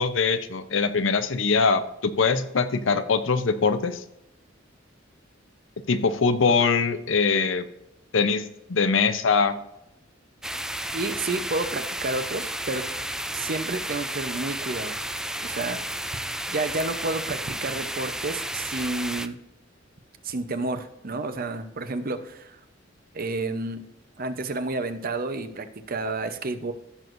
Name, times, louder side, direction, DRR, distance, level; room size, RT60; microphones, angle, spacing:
voice 1, 0.0-4.0 5.9-7.6 8.1-9.6, left 4 dB, 75° left, 10 dB, 0.7 m, -22 dB
sound 1, 10.4-19.3, right 1 dB, 5° right, 0.4 m, -32 dB
voice 2, 10.9-12.9 13.3-15.1 15.4-15.8 16.5-19.4 20.2-22.6 23.1-23.9 24.2-26.7, right 2 dB, 50° right, 9 dB, 0.8 m, -30 dB
15.5 x 6.2 x 2.6 m, 0.86 s
head